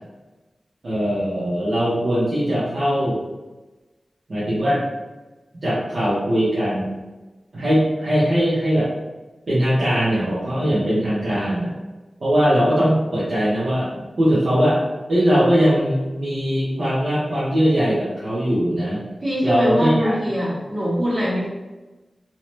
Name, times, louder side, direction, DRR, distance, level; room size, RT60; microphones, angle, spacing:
voice 1, 0.8-3.2 4.3-4.8 5.6-6.9 7.5-8.9 9.5-11.7 12.2-14.8 15.1-19.1 19.4-20.1, equal, 65° right, -10 dB, 0.8 m, -20 dB
voice 2, 19.2-21.4, equal, 45° right, -9 dB, 1.4 m, -22 dB
2.7 x 2.1 x 3.1 m, 1.1 s
wide cardioid pair, 90°, 0 cm